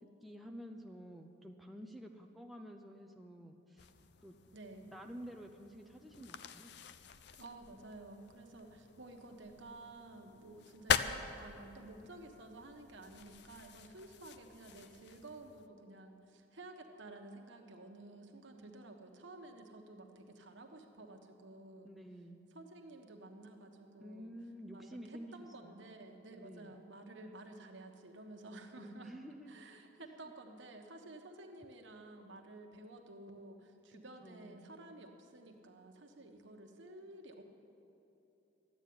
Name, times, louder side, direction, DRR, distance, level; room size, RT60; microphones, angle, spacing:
voice 1, 0.2-3.9 4.2-4.3 4.9-6.8 21.8-22.5 24.0-25.8 26.4-26.7 28.8-29.7 30.0-30.3 33.9-34.7, equal, ahead, 2 dB, 0.5 m, -51 dB
sound 1, 3.8-15.7, left 7 dB, 55° left, 0.5 m, -43 dB
voice 2, 4.5-4.9 7.3-21.9 22.5-24.3 24.7-29.1 29.5-37.4, right 2 dB, 65° right, 3 dB, 1.3 m, -52 dB
13.0 x 9.0 x 9.5 m, 3.0 s
head